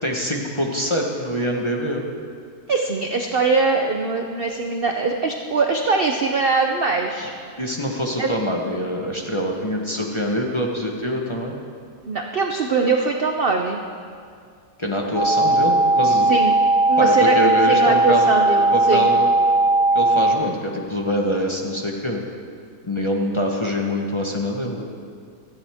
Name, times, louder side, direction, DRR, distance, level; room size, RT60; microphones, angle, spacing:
voice 1, 0.0-2.0 7.6-11.5 14.8-16.3 17.0-18.3 18.7-19.3 19.9-22.2 22.8-24.8, equal, 20° left, 0 dB, 1.0 m, -24 dB
voice 2, 2.7-7.3 8.2-8.3 12.0-13.8 16.3-16.6 16.9-19.1, right 3 dB, 50° right, 3 dB, 0.7 m, -22 dB
sound 1, 15.1-20.3, right 2 dB, 5° right, 2.0 m, -17 dB
17.0 x 13.5 x 3.5 m, 2.2 s
omnidirectional pair, 1.7 m